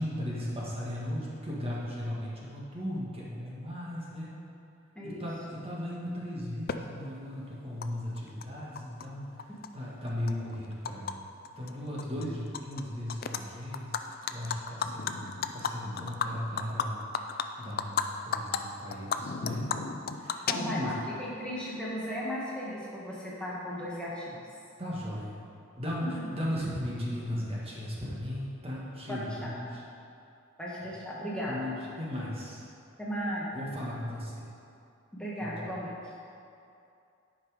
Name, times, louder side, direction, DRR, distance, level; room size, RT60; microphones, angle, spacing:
voice 1, 0.0-4.3 5.0-11.2 11.6-17.0 17.6-19.7 20.1-21.0 24.8-25.4 25.8-29.8 31.5-32.6 33.5-34.5 35.4-35.7, left 1 dB, 30° right, -6 dB, 1.5 m, -36 dB
Animal, 6.7-6.8 7.8-7.9 8.2-9.1 9.4-11.1 11.5-11.7 12.0-12.8 13.1-13.4 13.7-18.1 18.3-18.6 18.9-21.0, left 7 dB, 50° left, 0.4 m, -33 dB
voice 2, 20.5-20.9 21.2-24.4 29.1-29.5 30.6-31.6 33.0-33.5 35.1-35.9, equal, 5° left, -7 dB, 1.4 m, -36 dB
10.5 x 5.4 x 5.0 m, 2.6 s
head